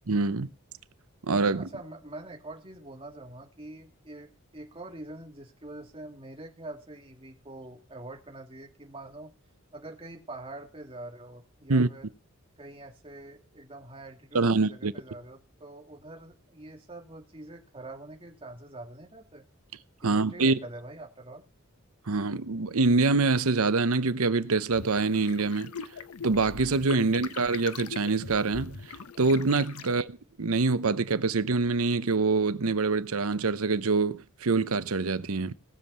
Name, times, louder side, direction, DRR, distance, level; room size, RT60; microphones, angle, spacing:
voice 1, 0.1-0.5 1.3-1.7 11.7-11.9 14.3-14.9 20.0-20.6 22.1-25.7 26.2-28.8 29.2-35.5, right 3 dB, 80° right, 0.8 m, -25 dB
voice 2, 1.5-4.3 4.5-9.3 9.7-12.1 12.6-19.4 20.0-21.4 29.8-30.0, right 2 dB, 25° right, 2.6 m, -45 dB
sound 1, 24.7-29.9, left 6 dB, 90° left, 0.9 m, -41 dB
19.0 x 7.4 x 5.6 m
head